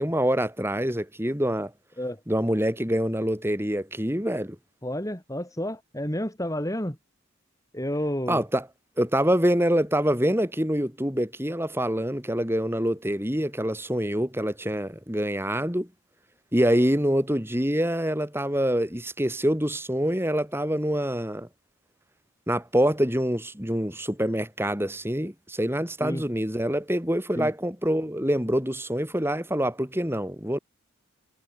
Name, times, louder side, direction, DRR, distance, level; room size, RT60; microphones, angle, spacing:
voice 1, 0.0-1.7 2.3-4.6 8.3-8.7 9.0-15.9 16.5-21.5 22.5-30.6, equal, 10° right, 4.6 m, -25 dB
voice 2, 4.8-7.0 7.7-8.5 26.0-26.2 27.4-27.5, left 1 dB, 15° left, 2.9 m, -30 dB
head